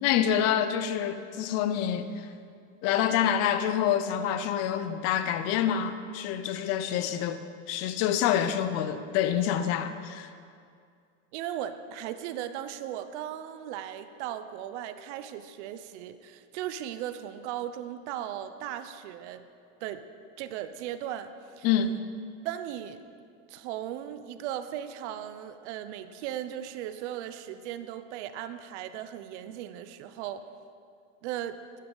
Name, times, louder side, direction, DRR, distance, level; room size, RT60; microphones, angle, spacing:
voice 1, 0.0-2.3 2.8-7.4 7.7-10.3 21.6-22.0, left 9 dB, 40° left, 0.5 m, -27 dB
voice 2, 11.3-19.5 19.8-20.1 20.4-21.7 22.4-23.0 23.5-30.5 31.2-31.6, right 11 dB, 60° right, 0.7 m, -37 dB
11.0 x 9.3 x 3.9 m
supercardioid pair, 150°, 39 cm